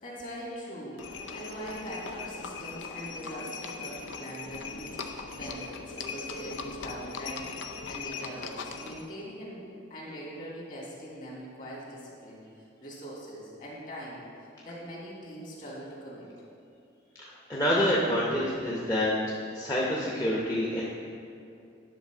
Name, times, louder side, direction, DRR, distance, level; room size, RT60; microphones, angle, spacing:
voice 1, 0.0-7.5 7.9-12.4 12.8-14.2 14.6-16.3, equal, 45° left, -5 dB, 2.2 m, -42 dB
Livestock farm animals working animals, 1.0-9.1, left 4 dB, 80° left, 0.6 m, -39 dB
voice 2, 17.2-19.1 19.5-20.8, equal, 20° left, -6 dB, 0.8 m, -27 dB
10.0 x 4.2 x 6.0 m, 2.6 s
head